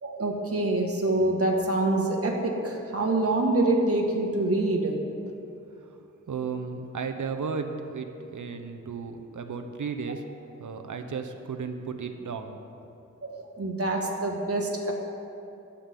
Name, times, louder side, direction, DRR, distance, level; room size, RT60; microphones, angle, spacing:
voice 1, 0.0-5.0 13.2-14.9, right 2 dB, 50° right, 0 dB, 2.0 m, -26 dB
voice 2, 6.3-10.2 10.6-12.6, right 5 dB, 90° right, 6 dB, 1.0 m, -34 dB
23.0 x 8.7 x 3.8 m, 2.7 s
wide cardioid pair, 120°, 30 cm